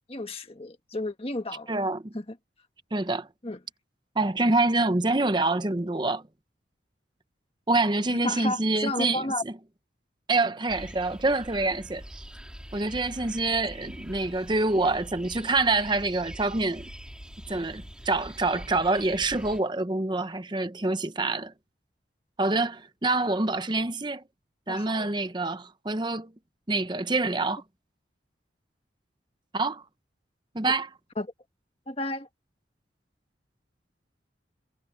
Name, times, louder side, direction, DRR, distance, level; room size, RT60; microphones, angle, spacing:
voice 1, 0.1-1.8 2.1-2.3 3.4-3.6 8.2-9.4 24.7-25.1 30.7-30.8 31.2-31.3 31.9-32.3, left 2 dB, 30° left, 1.6 m, -32 dB
voice 2, 1.7-2.1 2.9-3.3 4.2-6.2 7.7-9.5 10.3-12.2 12.7-16.9 17.5-21.5 22.4-24.2 24.7-26.3 26.7-27.6 29.5-29.8 30.5-30.9, right 2 dB, 25° right, 0.8 m, -26 dB
sound 1, 10.7-19.6, equal, 5° right, 1.9 m, -44 dB
head